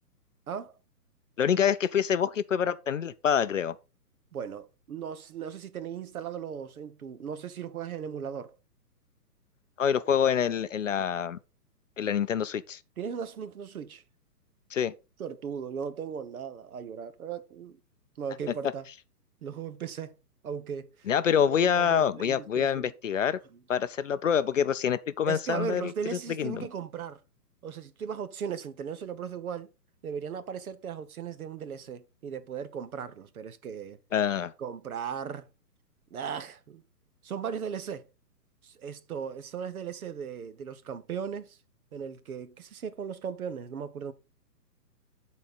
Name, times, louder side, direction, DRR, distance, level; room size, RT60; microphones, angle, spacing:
voice 1, 1.4-3.8 9.8-11.4 12.0-12.8 14.7-14.9 21.1-23.4 23.7-25.8 26.4-26.7 34.1-34.5, left 8 dB, 50° left, 0.5 m, -26 dB
voice 2, 4.3-8.6 13.0-14.0 15.2-17.8 18.2-18.9 19.4-20.2 20.4-21.1 21.5-22.9 23.5-23.6 25.3-27.2 27.6-29.7 30.0-34.0 34.6-35.5 36.1-36.8 37.2-38.1 38.6-41.6 41.9-44.1, right 7 dB, 60° right, 1.0 m, -37 dB
10.5 x 4.2 x 4.1 m
hypercardioid pair, 160°, 49 cm